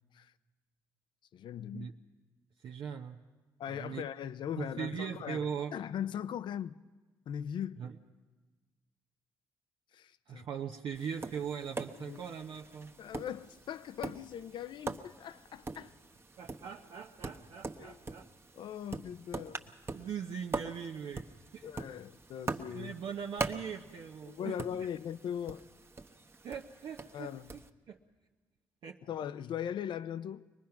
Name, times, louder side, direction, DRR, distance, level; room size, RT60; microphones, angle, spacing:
voice 1, 1.3-1.9 3.6-5.4 5.7-6.7 7.3-7.8 9.9-10.5 12.0-12.3 13.0-15.9 17.8-18.0 18.5-19.6 21.6-22.9 24.2-25.6 27.1-27.5 29.1-30.5, left 9 dB, 70° left, 0.6 m, -39 dB
voice 2, 2.6-3.2 3.7-4.0 4.6-5.7 7.8-8.0 10.3-12.9 16.4-18.3 19.9-21.3 21.5-21.7 22.7-24.6 26.4-27.6 27.9-28.0 28.8-29.0, right 7 dB, 70° right, 0.9 m, -40 dB
Tap, 10.9-27.7, right 3 dB, 30° right, 1.1 m, -43 dB
23.5 x 19.5 x 5.8 m
supercardioid pair, 65°, 8 cm